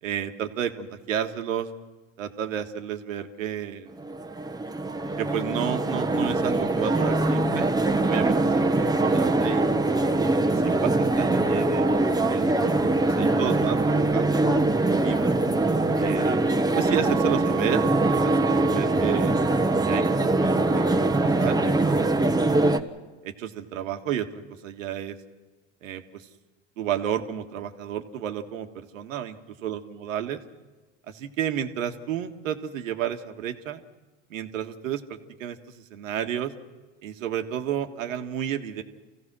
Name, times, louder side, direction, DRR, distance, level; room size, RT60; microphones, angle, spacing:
voice 1, 0.0-1.7 2.2-3.9 5.2-7.7 8.0-10.0 10.5-11.9 12.2-12.7 13.1-15.4 16.0-16.4 16.7-19.3 19.8-21.1 21.3-22.8 23.2-25.2 25.8-26.3 26.8-30.4 31.1-33.8 34.3-36.5 37.0-38.8, right 9 dB, 85° right, 6 dB, 1.7 m, -32 dB
sound 1, 4.0-22.8, right 2 dB, 10° right, 1.3 m, -23 dB
27.5 x 16.5 x 6.2 m, 1.2 s
hypercardioid pair, 100°, 38 cm